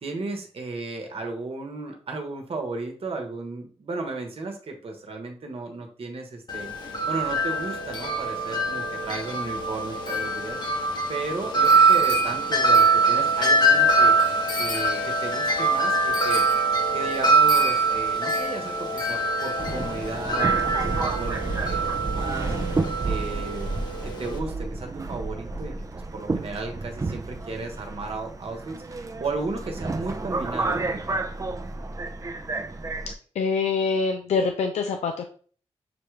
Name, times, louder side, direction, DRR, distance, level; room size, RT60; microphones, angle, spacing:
voice 1, 0.0-10.6 11.1-14.2 14.6-16.4 16.9-20.6 20.9-22.8 23.0-23.7 24.0-31.2, right 3 dB, 60° right, 3 dB, 1.1 m, -34 dB
Wind chime, 6.5-24.4, right 3 dB, 40° left, 0.9 m, -23 dB
Subway metro underground, 19.6-33.1, right 3 dB, 30° right, 0.5 m, -31 dB
voice 2, 33.4-35.2, left 4 dB, 85° left, 5 dB, 0.4 m, -25 dB
6.7 x 2.3 x 3.2 m, 0.44 s
cardioid pair, 65°, 11 cm